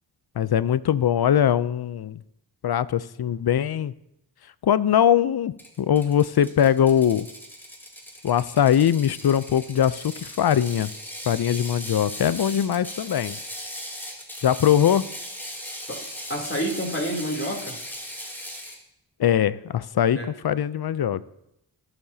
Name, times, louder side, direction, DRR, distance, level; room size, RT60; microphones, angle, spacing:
voice 1, 0.4-2.2 2.6-3.9 4.6-7.3 8.2-10.9 11.3-13.4 14.4-15.1 19.2-20.2 20.4-21.2, left 9 dB, 50° left, 17 dB, 0.5 m, -21 dB
Ratchet pawl, 5.6-18.8, equal, 5° left, 1.9 m, -38 dB
voice 2, 16.3-17.8 20.1-20.3, equal, 25° left, -1 dB, 3.0 m, -28 dB
16.0 x 6.9 x 2.8 m, 0.82 s
cardioid pair, 45°, 48 cm